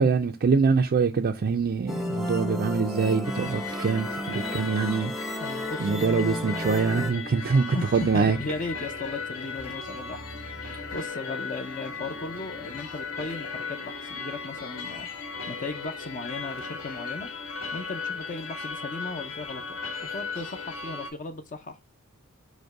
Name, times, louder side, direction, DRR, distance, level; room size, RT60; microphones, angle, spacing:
voice 1, 0.0-5.1 5.8-7.7 7.9-8.4, right 5 dB, 45° right, 0.4 m, -24 dB
sound 1, 1.9-7.1, equal, ahead, 0.7 m, -33 dB
sound 2, 3.2-21.1, left 4 dB, 70° left, 1.9 m, -36 dB
voice 2, 5.4-6.0 7.7-15.1 15.5-17.3 17.7-19.8 20.1-21.8, left 3 dB, 40° left, 0.6 m, -36 dB
5.1 x 2.2 x 4.6 m
head